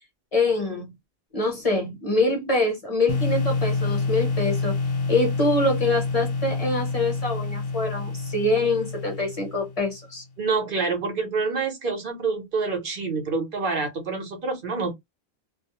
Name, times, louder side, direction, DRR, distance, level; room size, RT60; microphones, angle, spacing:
voice 1, 0.3-0.9 1.3-4.8 5.1-10.2, left 2 dB, 40° left, 0.8 m, -25 dB
sound 1, 3.1-9.9, left 3 dB, 65° left, 0.8 m, -27 dB
voice 2, 10.4-14.9, right 4 dB, 60° right, 0.9 m, -27 dB
2.3 x 2.0 x 2.8 m
omnidirectional pair, 1.1 m